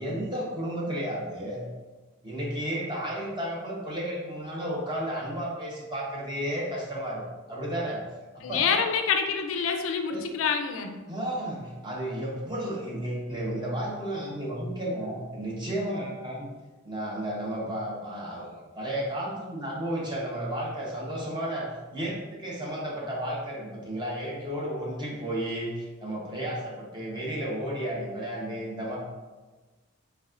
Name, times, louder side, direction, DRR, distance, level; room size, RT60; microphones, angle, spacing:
voice 1, 0.0-1.6 2.2-7.2 7.5-8.0 8.3-8.8 10.1-10.2 11.1-16.5 16.8-18.5 18.7-29.0, right 1 dB, 20° right, -4 dB, 0.9 m, -33 dB
voice 2, 8.4-11.0, left 6 dB, 70° left, 5 dB, 0.4 m, -27 dB
4.1 x 3.3 x 2.5 m, 1.2 s
head